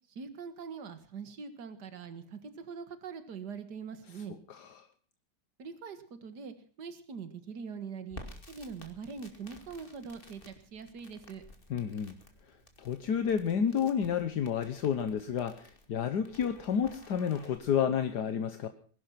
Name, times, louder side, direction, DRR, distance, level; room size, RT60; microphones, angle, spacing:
voice 1, 0.1-4.4 5.6-8.2 8.5-11.4, right 6 dB, 70° right, 10 dB, 2.3 m, -43 dB
voice 2, 4.5-4.9 11.7-12.1 12.8-18.7, left 8 dB, 70° left, 9 dB, 1.6 m, -30 dB
Crackle, 8.1-17.5, left 1 dB, 30° left, 2.5 m, -54 dB
20.5 x 12.0 x 5.9 m, 0.43 s
omnidirectional pair, 1.9 m